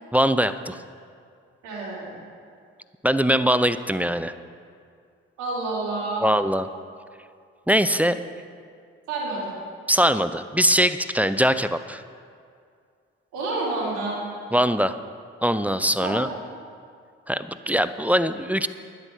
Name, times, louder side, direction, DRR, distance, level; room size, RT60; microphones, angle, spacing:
voice 1, 0.1-0.8 3.0-4.3 6.2-6.7 7.7-8.2 9.9-12.0 14.5-15.0 15.4-16.3 17.3-18.7, equal, 5° right, 12 dB, 0.6 m, -22 dB
voice 2, 1.6-2.2 5.4-6.3 9.1-9.6 13.3-14.2 16.0-16.2, right 2 dB, 80° right, -5 dB, 4.0 m, -29 dB
12.0 x 11.0 x 5.7 m, 2.2 s
hypercardioid pair, 45°, 29 cm